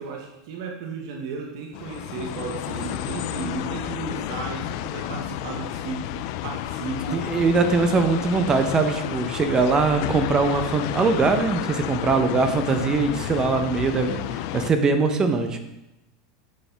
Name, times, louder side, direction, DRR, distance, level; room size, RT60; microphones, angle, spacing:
voice 1, 0.0-6.1 6.4-7.3, right 5 dB, 70° right, 1 dB, 1.0 m, -34 dB
sound 1, 1.7-14.7, left 13 dB, 60° left, 0.3 m, -31 dB
voice 2, 7.1-15.6, right 4 dB, 25° right, 7 dB, 0.7 m, -22 dB
6.3 x 5.4 x 3.4 m, 0.92 s
supercardioid pair, 115°, 2 cm